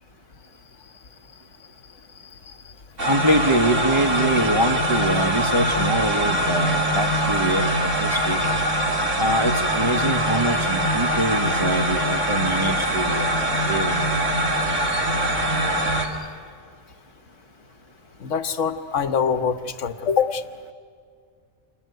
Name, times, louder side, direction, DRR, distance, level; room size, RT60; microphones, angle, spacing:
sound 1, 3.0-16.1, right 1 dB, 85° right, 2.9 m, -23 dB
voice 1, 3.1-8.4 9.2-14.1, right 1 dB, 25° right, 6 dB, 1.2 m, -24 dB
voice 2, 18.2-20.4, left 6 dB, 85° left, 10 dB, 1.4 m, -24 dB
28.5 x 22.0 x 9.3 m, 2.1 s
omnidirectional pair, 1.2 m